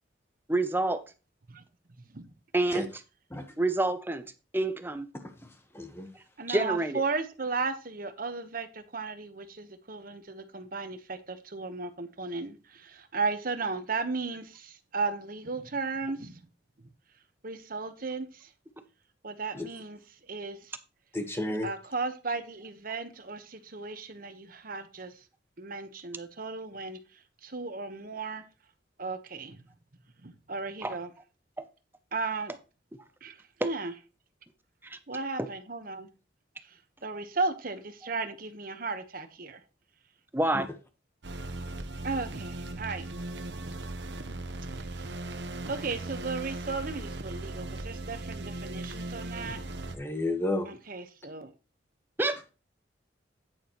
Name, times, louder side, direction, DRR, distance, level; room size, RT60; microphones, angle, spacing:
voice 1, 0.5-1.0 2.5-2.9 3.6-4.2 4.5-5.1 6.5-7.0 30.8-31.0 33.6-33.7 34.8-35.0 35.4-35.5 40.3-40.7 52.2-52.5, right 2 dB, 10° right, 0.6 m, -27 dB
voice 2, 5.7-6.1 19.5-19.7 21.1-21.7 40.5-40.6 49.9-50.7, left 2 dB, 15° left, 1.2 m, -31 dB
voice 3, 6.4-16.4 17.4-18.5 19.2-20.0 20.3-20.7 21.6-25.1 25.6-27.0 27.4-28.4 29.0-29.6 30.2-31.1 32.1-32.5 33.2-33.9 35.1-36.1 36.7-39.6 42.0-43.1 44.3-44.4 45.7-49.6 50.7-51.5, right 4 dB, 50° right, 1.2 m, -35 dB
sound 1, 41.2-50.0, right 2 dB, 70° right, 1.0 m, -38 dB
9.4 x 9.3 x 3.0 m
head